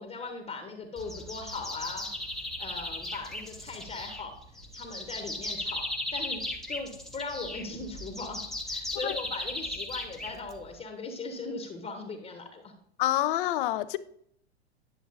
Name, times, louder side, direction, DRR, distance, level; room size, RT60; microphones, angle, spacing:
voice 1, 0.0-2.1 2.6-5.9 6.1-12.7, left 3 dB, 20° left, 1.0 m, -39 dB
sound 1, 1.0-10.8, left 1 dB, ahead, 0.7 m, -37 dB
voice 2, 13.0-14.0, left 14 dB, 50° left, 0.5 m, -27 dB
10.0 x 6.9 x 2.5 m
figure-of-eight pair, 95°, 34 cm